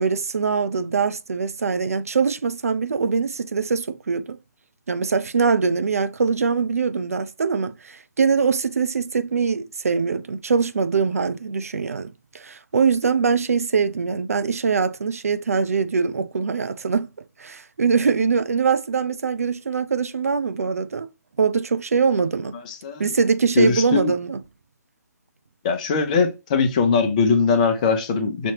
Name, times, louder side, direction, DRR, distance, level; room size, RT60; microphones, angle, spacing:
voice 1, 0.0-4.4 4.9-17.1 17.4-21.1 21.4-22.6 23.0-24.4, right 5 dB, 55° right, 0.5 m, -23 dB
voice 2, 22.7-23.0 23.6-24.1 25.6-28.5, left 5 dB, 25° left, 0.6 m, -20 dB
6.0 x 2.8 x 2.8 m
figure-of-eight pair, 140°, 9 cm